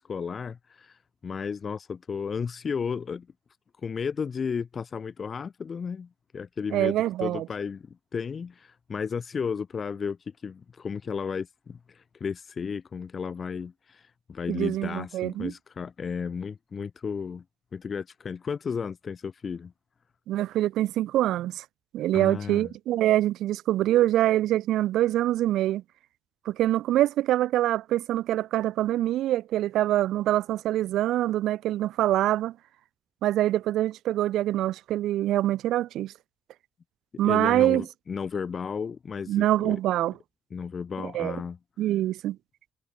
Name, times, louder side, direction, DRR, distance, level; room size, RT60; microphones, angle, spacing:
voice 1, 0.0-3.3 3.8-10.2 10.4-17.4 17.7-19.7 22.1-22.7 37.2-39.8 40.5-41.6, left 6 dB, 45° left, 0.6 m, -33 dB
voice 2, 6.7-7.5 14.5-15.5 20.3-21.6 21.9-25.8 26.5-32.6 33.2-36.1 37.2-37.8 39.3-40.1 41.0-41.4 41.8-42.4, right 13 dB, 85° right, 0.7 m, -25 dB
cardioid pair, 90°, 0 cm